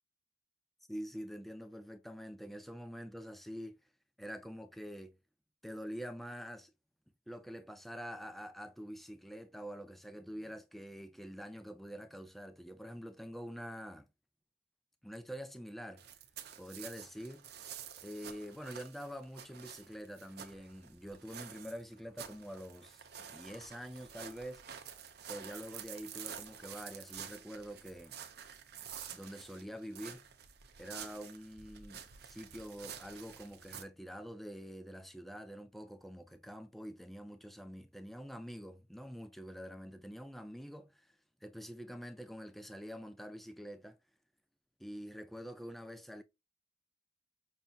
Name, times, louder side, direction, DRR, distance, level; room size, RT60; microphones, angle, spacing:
voice 1, 0.9-3.8 4.2-5.2 5.6-6.7 7.3-14.1 15.0-16.0 16.6-17.5 18.0-24.6 25.3-28.1 29.1-30.3 30.8-44.0 44.8-46.2, equal, ahead, 0.3 m, -46 dB
sound 1, 16.0-33.8, right 8 dB, 55° right, 0.6 m, -49 dB
5.4 x 2.7 x 2.2 m
head